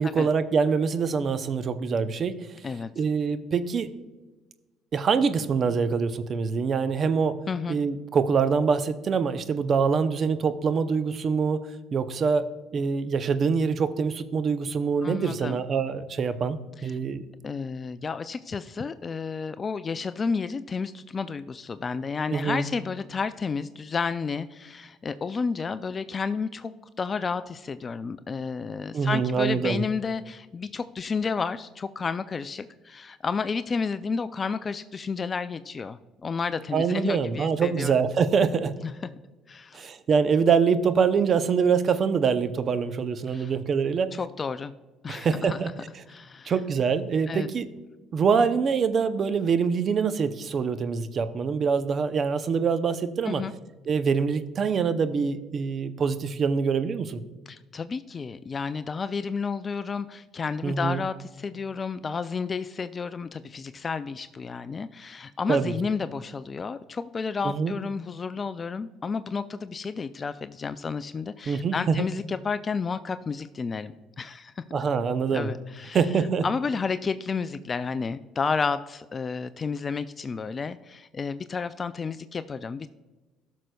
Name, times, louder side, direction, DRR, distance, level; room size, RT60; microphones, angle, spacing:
voice 1, 0.0-2.4 3.0-3.9 4.9-7.4 7.7-17.3 22.3-22.7 28.9-29.8 36.7-38.7 39.7-44.1 45.1-45.7 46.4-47.7 48.1-53.4 53.9-57.2 60.6-61.0 65.5-65.7 67.4-67.7 71.5-72.0 74.7-75.5 75.9-76.5, right 5 dB, 45° right, 12 dB, 0.6 m, -25 dB
voice 2, 7.5-7.8 15.0-15.6 16.8-16.9 17.4-37.9 39.5-39.9 43.3-43.5 44.1-44.7 45.0-45.6 46.1-46.5 47.3-47.5 53.3-53.5 57.5-74.6 75.3-76.0 76.4-82.9, left 5 dB, 35° left, 12 dB, 0.3 m, -31 dB
13.5 x 6.3 x 2.3 m, 1.2 s
supercardioid pair, 80°, 0 cm